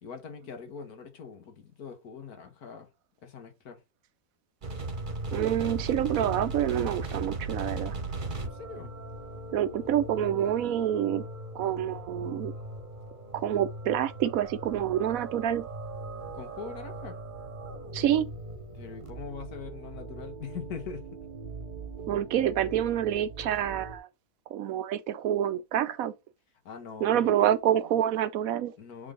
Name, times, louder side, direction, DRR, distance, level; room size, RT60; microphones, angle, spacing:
voice 1, 0.0-2.9 3.2-3.8 8.4-8.9 16.3-17.2 18.7-21.1 26.6-27.6 28.8-29.1, left 6 dB, 75° left, 1.8 m, -42 dB
sound 1, 4.6-24.0, right 2 dB, 35° right, 1.1 m, -39 dB
voice 2, 5.3-8.0 9.5-11.3 11.5-12.5 13.3-15.7 17.9-18.3 22.1-24.1 24.5-26.1 27.0-28.7, right 11 dB, 75° right, 1.0 m, -27 dB
4.9 x 3.9 x 5.1 m
omnidirectional pair, 1.6 m